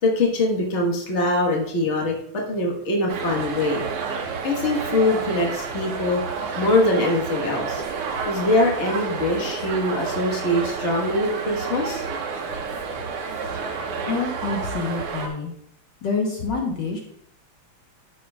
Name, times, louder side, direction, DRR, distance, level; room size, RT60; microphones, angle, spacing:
voice 1, 0.0-3.8 4.4-6.2 6.6-7.8 8.2-12.0, left 2 dB, 35° left, -1 dB, 1.5 m, -23 dB
sound 1, 3.1-15.3, right 5 dB, 85° right, 2.0 m, -30 dB
voice 2, 14.1-15.5 16.0-17.0, left 4 dB, 60° left, 0 dB, 1.7 m, -27 dB
12.5 x 6.1 x 2.3 m, 0.67 s
omnidirectional pair, 2.4 m